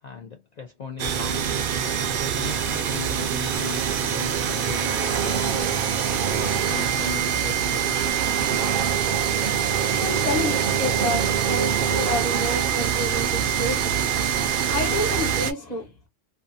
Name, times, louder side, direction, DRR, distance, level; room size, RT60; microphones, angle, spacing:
voice 1, 0.0-1.5 2.3-5.8 6.3-8.4, left 5 dB, 75° left, 0.3 m, -38 dB
sound 1, 1.0-15.5, right 8 dB, 60° right, 0.6 m, -24 dB
voice 2, 9.9-13.9 14.7-16.1, left 2 dB, 35° left, 1.1 m, -29 dB
2.6 x 2.3 x 2.5 m
omnidirectional pair, 1.3 m